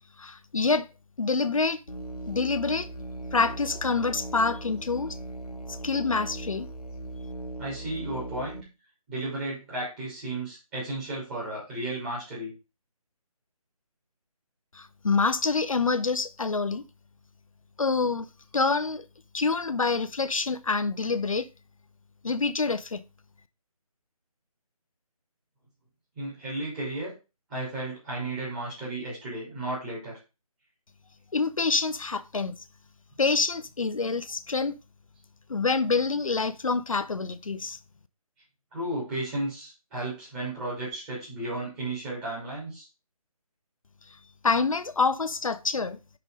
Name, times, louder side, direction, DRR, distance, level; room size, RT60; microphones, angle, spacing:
voice 1, 0.2-0.9 1.2-1.8 2.3-2.9 3.3-5.2 5.7-6.7 14.7-16.8 17.8-18.3 18.5-19.1 19.3-21.5 22.2-23.0 31.3-32.6 33.2-34.7 35.5-37.8 44.4-46.0, left 4 dB, 60° left, 0.7 m, -26 dB
Musical instrument, 1.9-8.6, right 1 dB, 85° left, 1.2 m, -39 dB
voice 2, 7.6-8.7 9.1-12.5 26.2-27.1 27.5-30.2 38.7-42.9, right 2 dB, 15° right, 3.3 m, -34 dB
6.0 x 5.6 x 4.9 m
figure-of-eight pair, 155°, 19 cm